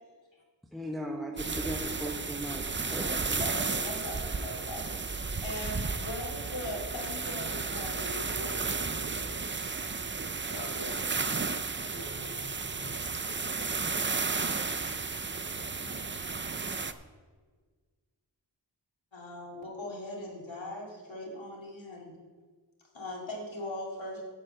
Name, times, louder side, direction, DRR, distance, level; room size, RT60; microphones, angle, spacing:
voice 1, 0.7-3.4, equal, ahead, 2 dB, 0.8 m, -38 dB
sound 1, 1.4-16.9, right 4 dB, 25° right, 0.5 m, -33 dB
voice 2, 3.4-5.0 5.4-8.1 19.1-22.1 23.0-24.2, left 1 dB, 85° left, -2 dB, 2.4 m, -39 dB
voice 3, 7.9-9.8 10.5-11.2 11.9-13.0, equal, 60° right, -1 dB, 3.0 m, -45 dB
8.8 x 6.4 x 7.8 m, 1.5 s
wide cardioid pair, 60°, 44 cm